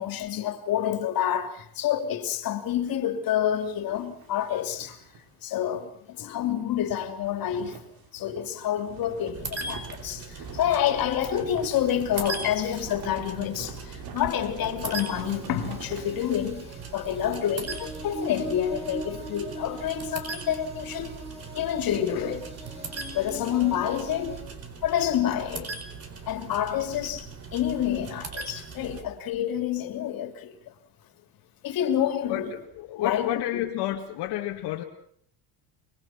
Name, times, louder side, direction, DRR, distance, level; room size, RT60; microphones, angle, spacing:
voice 1, 0.0-5.0 5.4-7.8 8.1-21.2 21.5-22.5 23.1-24.4 24.8-25.7 26.3-30.7 31.6-32.5 33.0-33.4, left 10 dB, 55° left, 3.1 m, -28 dB
sound 1, 3.5-5.8 6.1-6.3 6.6-17.8, right 6 dB, 55° right, 3.4 m, -46 dB
sound 2, 9.3-29.0, right 4 dB, 35° right, 4.4 m, -40 dB
sound 3, 15.0-24.4, right 1 dB, 15° right, 7.5 m, -41 dB
voice 2, 32.3-34.8, left 14 dB, 70° left, 2.2 m, -30 dB
24.5 x 23.0 x 6.0 m
cardioid pair, 130°, 42 cm